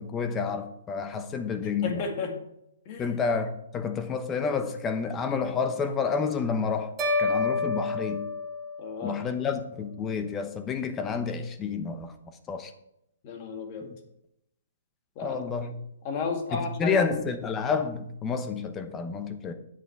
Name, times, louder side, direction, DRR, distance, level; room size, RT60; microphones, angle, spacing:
voice 1, 0.0-2.0 3.0-6.9 7.2-8.2 9.0-12.1 12.5-12.7 15.2-15.7 16.5-19.5, left 5 dB, 15° left, 8 dB, 0.9 m, -29 dB
voice 2, 1.8-2.3 2.9-3.2 8.8-9.2 13.2-13.9 15.2-15.4 16.0-17.1, left 4 dB, 35° left, 3 dB, 2.2 m, -33 dB
sound 1, 7.0-9.3, left 3 dB, 15° right, 2.3 m, -29 dB
10.0 x 7.8 x 4.7 m, 0.81 s
hypercardioid pair, 150°, 0 cm